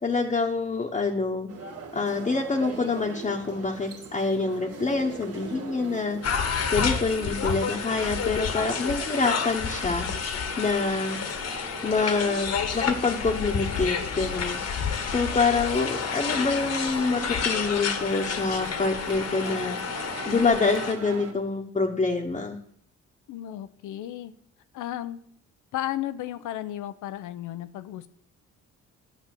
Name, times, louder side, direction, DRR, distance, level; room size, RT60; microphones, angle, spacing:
voice 1, 0.0-1.5 1.9-11.2 11.8-19.8 20.3-22.6, left 4 dB, 25° left, 0 dB, 1.1 m, -26 dB
sound 1, 1.5-21.3, right 4 dB, 50° right, 1.9 m, -41 dB
sound 2, 6.2-20.9, left 6 dB, 55° left, 1.4 m, -30 dB
voice 2, 23.3-24.3 24.7-25.2 25.7-28.1, left 13 dB, 85° left, 12 dB, 0.8 m, -34 dB
9.4 x 5.3 x 7.7 m, 0.66 s
cardioid pair, 90°, 30 cm